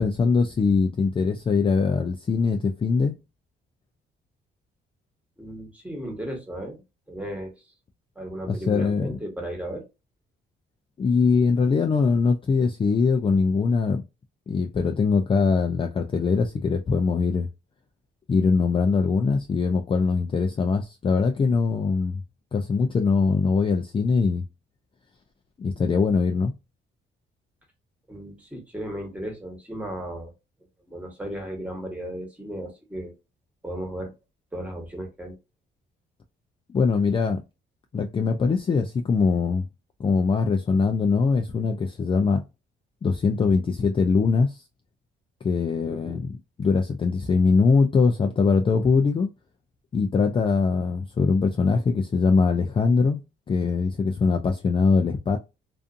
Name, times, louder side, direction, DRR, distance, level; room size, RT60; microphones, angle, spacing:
voice 1, 0.0-3.1 8.5-9.2 11.0-14.0 14.5-17.5 18.3-22.2 22.5-24.4 25.6-26.5 36.7-37.4 37.9-39.7 40.0-42.4 43.0-44.6 45.4-49.3 49.9-53.2 53.5-55.4, left 4 dB, 25° left, 0.4 m, -22 dB
voice 2, 5.4-6.8 7.1-7.6 8.2-9.8 28.1-30.3 30.9-33.1 33.6-34.1 34.5-35.3 45.9-46.2, right 1 dB, 5° right, 1.2 m, -35 dB
2.5 x 2.5 x 2.5 m
cardioid pair, 90°, 20 cm